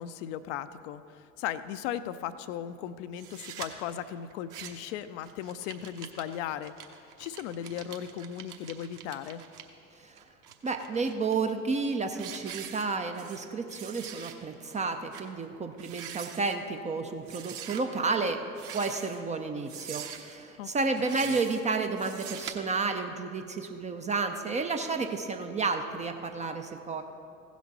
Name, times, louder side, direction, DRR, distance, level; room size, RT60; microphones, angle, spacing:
voice 1, 0.0-6.7 7.2-9.4 20.6-20.7 21.3-21.4, left 10 dB, 50° left, 12 dB, 0.5 m, -37 dB
sound 1, 3.2-3.7 4.3-4.9 5.2-9.6 10.2-11.3 11.8-11.9 12.2-13.4 13.7-14.3 14.7-14.8 15.1-15.3 15.7-16.6 17.3-17.8 18.5-19.2 19.7-20.4 20.9-21.6 22.0-22.5, right 9 dB, 45° right, 1.1 m, -43 dB
voice 2, 10.6-18.4 18.7-27.0, right 4 dB, 15° right, 6 dB, 0.4 m, -31 dB
16.0 x 6.1 x 4.1 m, 2.6 s
figure-of-eight pair, 65°, 45 cm